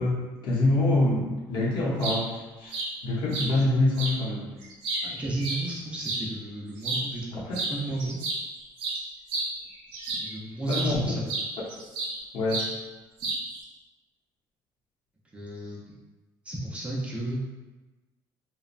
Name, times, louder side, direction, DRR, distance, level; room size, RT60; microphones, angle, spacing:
voice 1, 0.0-2.8 3.0-4.5 10.7-11.0 12.3-12.6, left 2 dB, 60° left, -4 dB, 0.8 m, -25 dB
sound 1, 1.8-2.2 2.7-2.9 3.3-3.5 4.0-4.1 4.6-6.2 6.8-7.1 7.5-7.7 8.0-10.3 10.7-10.9 11.3-12.2 12.5-12.7 13.2-13.6, right 3 dB, 85° right, 0.6 m, -31 dB
voice 2, 5.0-7.4 7.7-8.2 10.2-11.3 15.3-15.9 16.4-17.4, right 2 dB, 15° right, -5 dB, 0.5 m, -33 dB
2.9 x 2.0 x 2.4 m, 1.2 s
cardioid pair, 120°, 9 cm